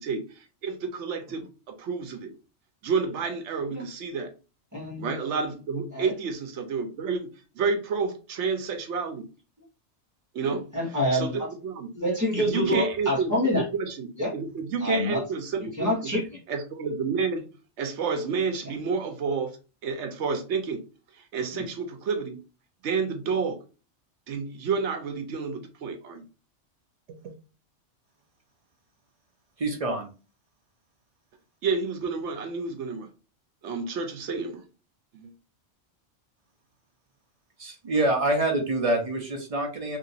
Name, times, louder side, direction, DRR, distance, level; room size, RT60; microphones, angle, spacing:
voice 1, 0.0-1.4 1.8-2.3 2.8-4.3 5.0-7.3 7.5-9.2 10.3-10.7 11.1-11.9 12.4-13.3 13.8-16.1 16.5-17.5 17.8-19.6 19.8-20.8 21.2-22.4 22.8-23.6 24.3-26.2 27.1-27.3 31.6-33.1 33.6-34.6 35.1-35.3, right 5 dB, 70° right, 0.9 m, -30 dB
voice 2, 4.7-5.1 5.9-6.1 10.4-11.5 11.9-13.7 14.2-14.3 14.8-15.2 15.8-16.4 18.6-18.7 21.5-21.7, left 1 dB, 15° right, 1.4 m, -27 dB
voice 3, 29.6-30.1 37.6-40.0, right 2 dB, 35° right, 0.7 m, -26 dB
2.9 x 2.9 x 2.7 m
omnidirectional pair, 1.3 m